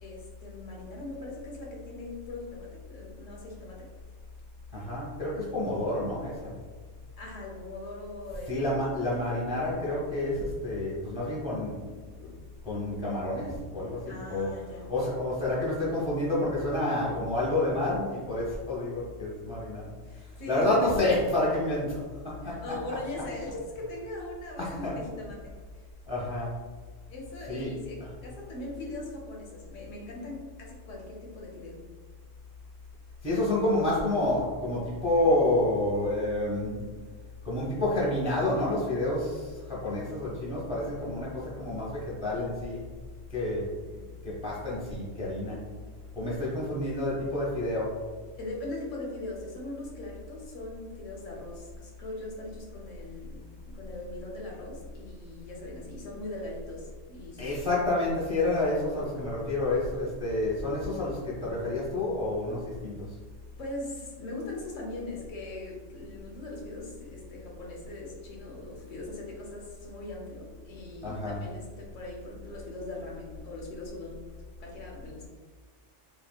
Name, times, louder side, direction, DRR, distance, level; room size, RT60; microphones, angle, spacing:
voice 1, 0.0-3.9 7.2-8.9 9.1-9.2 14.1-14.9 20.0-20.9 22.4-25.5 27.1-31.8 48.4-57.5 63.6-74.2 74.6-75.3, left 2 dB, 85° left, -2 dB, 1.1 m, -40 dB
voice 2, 4.7-6.5 8.5-11.8 12.2-12.3 12.6-14.5 14.9-19.9 20.2-22.6 24.6-24.9 26.1-26.6 27.5-27.7 33.2-37.0 37.4-42.8 43.3-44.0 44.2-45.6 46.1-48.0 57.4-63.2 71.0-71.4, left 1 dB, 10° right, -6 dB, 0.4 m, -29 dB
3.5 x 2.3 x 2.2 m, 1.5 s
omnidirectional pair, 1.3 m